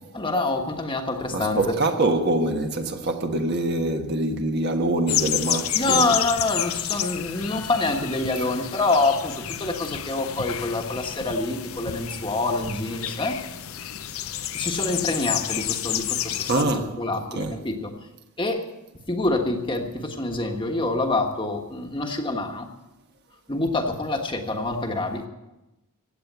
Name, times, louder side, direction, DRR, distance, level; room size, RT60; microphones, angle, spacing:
voice 1, 0.1-1.7 5.7-13.4 14.5-16.7 17.0-17.9 18.4-18.6 19.1-22.7 23.5-25.3, left 2 dB, 20° left, 1.4 m, -26 dB
voice 2, 1.3-6.1 7.5-7.6 16.5-17.6, right 2 dB, 50° right, 1.3 m, -25 dB
sound 1, 5.1-16.6, left 11 dB, 75° left, 0.7 m, -30 dB
15.5 x 8.7 x 8.0 m
head